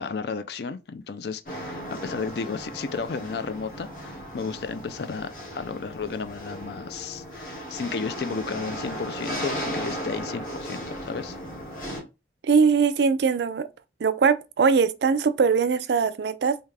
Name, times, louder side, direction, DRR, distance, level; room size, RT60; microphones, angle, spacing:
voice 1, 0.0-11.4, left 5 dB, 65° left, 0.4 m, -33 dB
sound 1, 1.5-12.0, equal, 50° left, 1.4 m, -36 dB
voice 2, 12.4-13.7 14.0-16.6, right 5 dB, 70° right, 0.4 m, -21 dB
3.5 x 2.7 x 3.3 m
head